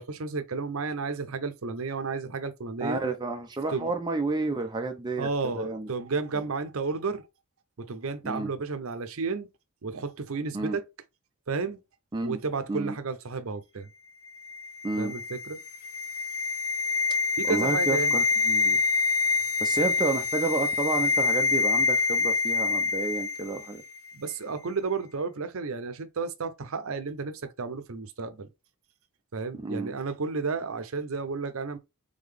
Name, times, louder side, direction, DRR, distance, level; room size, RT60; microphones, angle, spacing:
voice 1, 0.0-3.0 3.7-3.9 5.2-7.2 7.9-9.5 9.8-10.8 11.5-11.8 12.2-13.9 15.0-15.6 17.4-18.2 24.1-28.5 29.3-31.8, right 4 dB, 65° right, 0.6 m, -32 dB
voice 2, 2.8-5.9 8.2-8.5 10.5-10.8 12.1-12.4 12.7-13.0 14.8-15.1 17.5-18.8 19.6-23.8 29.6-29.9, right 3 dB, 20° right, 0.5 m, -30 dB
sound 1, 14.4-23.7 24.0-24.1, left 4 dB, 75° left, 1.1 m, -26 dB
3.8 x 3.5 x 3.3 m
head